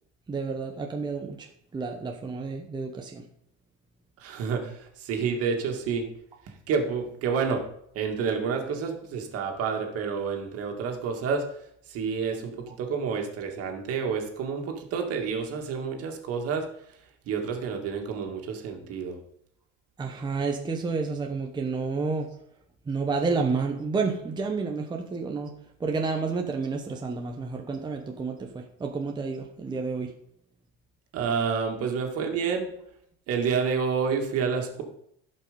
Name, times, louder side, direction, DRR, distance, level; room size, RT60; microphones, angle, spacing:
voice 1, 0.3-1.5 1.7-3.2 20.0-22.3 22.9-25.5 25.8-30.1, right 4 dB, 15° right, 2 dB, 0.9 m, -30 dB
voice 2, 4.2-6.1 6.7-7.6 7.9-11.4 11.9-16.7 17.3-19.2 31.1-32.7 33.3-34.8, right 6 dB, 55° right, 3 dB, 2.2 m, -29 dB
15.5 x 5.5 x 5.3 m, 0.71 s
cardioid pair, 140°, 29 cm